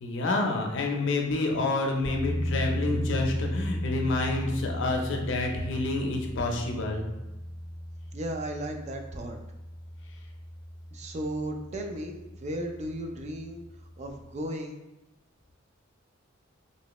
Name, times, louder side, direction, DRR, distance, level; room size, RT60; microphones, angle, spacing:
voice 1, 0.0-7.1, left 2 dB, 60° left, 1 dB, 0.5 m, -28 dB
sound 1, 2.0-14.3, equal, 70° right, 1.2 m, -36 dB
voice 2, 8.1-9.4 10.9-13.6 14.0-14.8, right 1 dB, 35° right, 3 dB, 0.3 m, -35 dB
3.1 x 2.8 x 2.9 m, 0.95 s
head